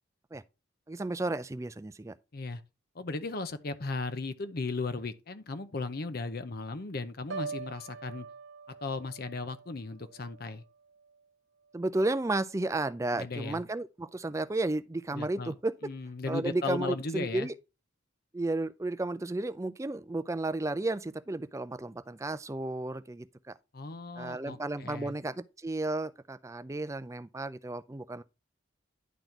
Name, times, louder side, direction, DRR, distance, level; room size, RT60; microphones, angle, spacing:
voice 1, 0.9-2.1 11.7-15.7 16.3-17.5 18.3-23.6 24.2-28.2, right 2 dB, 15° right, 0.4 m, -33 dB
voice 2, 2.9-8.3 8.8-10.6 13.1-13.6 15.1-15.5 15.8-17.5 23.7-25.1, left 3 dB, 50° left, 0.7 m, -36 dB
Piano, 7.3-11.3 11.6-12.0, right 5 dB, 70° right, 0.6 m, -44 dB
10.5 x 4.1 x 4.5 m
head